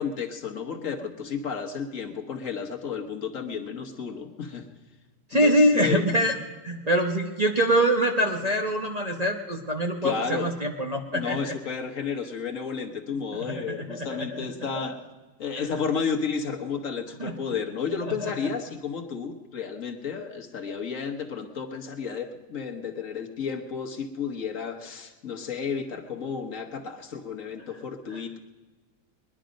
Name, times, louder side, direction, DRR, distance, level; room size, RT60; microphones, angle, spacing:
voice 1, 0.0-4.6 5.3-6.1 10.0-10.5 11.1-15.0 15.4-28.4, left 6 dB, 55° left, 3 dB, 1.5 m, -32 dB
voice 2, 5.3-6.3 6.6-11.5 13.5-14.2 17.2-17.3 18.2-18.3, equal, 30° right, 0 dB, 0.9 m, -24 dB
21.0 x 11.0 x 5.1 m, 1.3 s
omnidirectional pair, 1.7 m